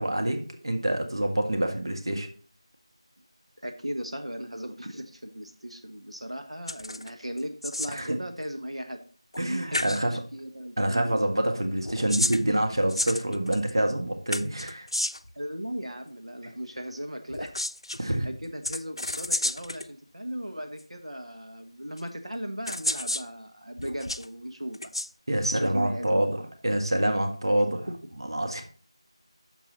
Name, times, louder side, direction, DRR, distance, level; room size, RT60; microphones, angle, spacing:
voice 1, 0.0-2.3 7.9-8.2 9.4-10.2 10.8-14.9 18.0-18.3 25.3-27.9 28.2-28.6, right 1 dB, 50° right, 5 dB, 1.7 m, -26 dB
voice 2, 3.6-9.0 9.4-11.2 15.3-17.6 18.0-24.8 25.5-26.4, equal, 75° right, 5 dB, 1.3 m, -37 dB
sound 1, 6.7-7.1 7.4-8.1 9.3-9.5 9.7-10.0 11.8-13.7 14.3-15.3 17.3-18.0 18.6-19.9 20.8-20.9 22.0-22.1 22.7-23.3 23.8-24.3 24.7-25.1, left 1 dB, 60° left, 0.6 m, -31 dB
9.4 x 7.0 x 4.1 m, 0.42 s
figure-of-eight pair, 170°, 3 cm